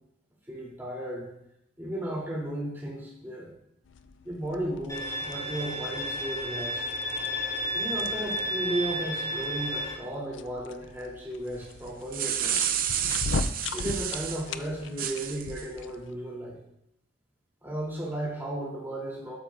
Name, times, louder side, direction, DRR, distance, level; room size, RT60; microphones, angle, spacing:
voice 1, 0.5-1.3 1.8-3.5 4.2-6.9 7.7-12.6 13.7-16.6 17.6-19.4, right 1 dB, 10° right, -5 dB, 3.4 m, -34 dB
sound 1, 3.8-16.2, left 3 dB, 85° left, 0.5 m, -40 dB
Bowed string instrument, 4.9-9.9, equal, 20° left, 3.9 m, -32 dB
sound 2, 11.9-14.4 15.0-15.6, right 9 dB, 50° right, 0.7 m, -30 dB
13.0 x 12.5 x 2.6 m, 0.81 s
head